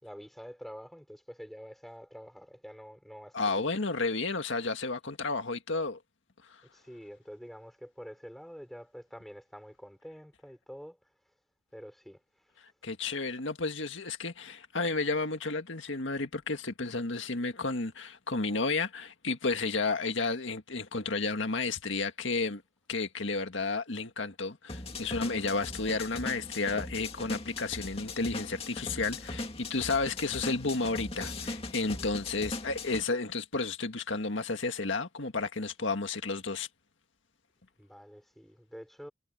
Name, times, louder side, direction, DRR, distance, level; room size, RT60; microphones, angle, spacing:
voice 1, 0.0-3.7 6.7-11.0 11.7-12.5 37.8-39.1, equal, ahead, 4.8 m, -47 dB
voice 2, 3.3-6.0 12.8-22.6 22.9-36.7, left 3 dB, 80° left, 1.7 m, -32 dB
sound 1, 24.7-33.0, left 2 dB, 30° left, 2.4 m, -39 dB
head